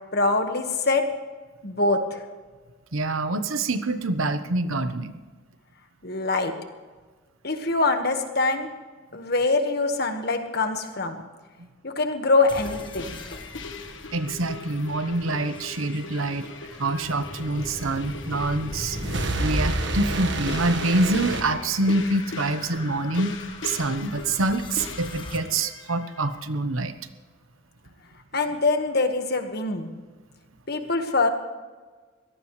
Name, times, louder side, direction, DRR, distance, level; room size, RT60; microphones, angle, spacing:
voice 1, 0.1-1.1 1.6-2.2 6.0-6.5 7.4-8.7 9.1-11.2 11.8-13.2 28.3-29.9 30.7-31.3, left 3 dB, 50° left, 6 dB, 1.6 m, -24 dB
voice 2, 2.9-5.1 11.6-11.7 14.1-16.5 16.8-19.0 19.4-23.3 23.6-26.9, right 2 dB, 85° right, 10 dB, 1.1 m, -26 dB
sound 1, 12.5-26.4, left 3 dB, 65° left, 1.4 m, -40 dB
sound 2, 12.5-25.4, left 1 dB, 25° left, 1.4 m, -41 dB
sound 3, 18.6-22.2, right 2 dB, 60° right, 1.5 m, -29 dB
23.5 x 18.0 x 3.3 m, 1.4 s
head